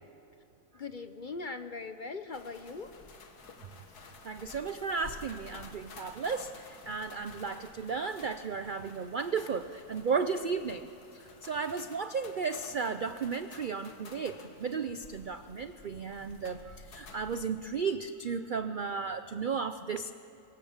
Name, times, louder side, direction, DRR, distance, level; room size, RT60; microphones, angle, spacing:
voice 1, 0.7-2.9 18.6-18.7, left 4 dB, 40° left, 9 dB, 0.7 m, -40 dB
sound 1, 2.3-17.5, left 3 dB, 80° left, 2.2 m, -52 dB
voice 2, 4.2-20.1, right 5 dB, 80° right, 11 dB, 0.4 m, -34 dB
25.0 x 23.0 x 7.3 m, 2.9 s
omnidirectional pair, 1.7 m